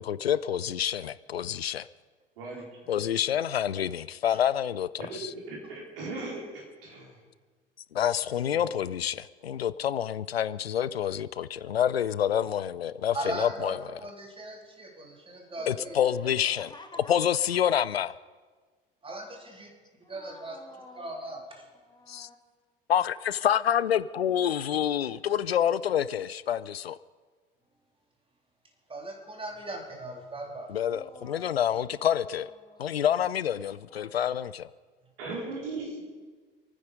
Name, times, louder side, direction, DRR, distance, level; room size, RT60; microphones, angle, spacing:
voice 1, 0.0-1.9 2.9-5.3 7.9-13.8 15.7-16.7 17.1-18.1 22.1-22.3 22.9-27.0 30.7-32.5 32.8-34.7, left 9 dB, 85° left, 17 dB, 0.5 m, -27 dB
voice 2, 5.0-7.2 8.5-8.6 35.2-36.0, right 3 dB, 65° right, -2 dB, 4.6 m, -38 dB
voice 3, 13.1-16.0 19.0-19.7 20.1-20.6 21.0-21.7 28.9-30.7, right 1 dB, 20° right, 2 dB, 3.4 m, -38 dB
voice 4, 15.6-17.2 17.5-17.9 19.4-19.7 20.0-21.2 21.8-22.4 30.9-33.1 33.9-34.4, left 2 dB, 15° left, 3 dB, 2.6 m, -49 dB
28.0 x 9.6 x 5.3 m, 1.4 s
figure-of-eight pair, 65°, 30 cm